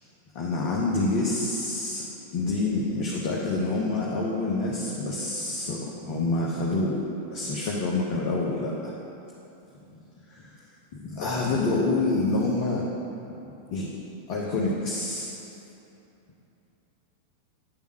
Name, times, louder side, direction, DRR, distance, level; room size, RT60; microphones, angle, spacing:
voice 1, 0.3-2.0 2.3-7.0 7.3-8.9 10.3-10.4 10.9-12.8 13.7-13.9 14.3-15.4, left 2 dB, 45° left, -4 dB, 1.0 m, -27 dB
10.5 x 3.6 x 6.3 m, 2.9 s
figure-of-eight pair, 90°, 0 cm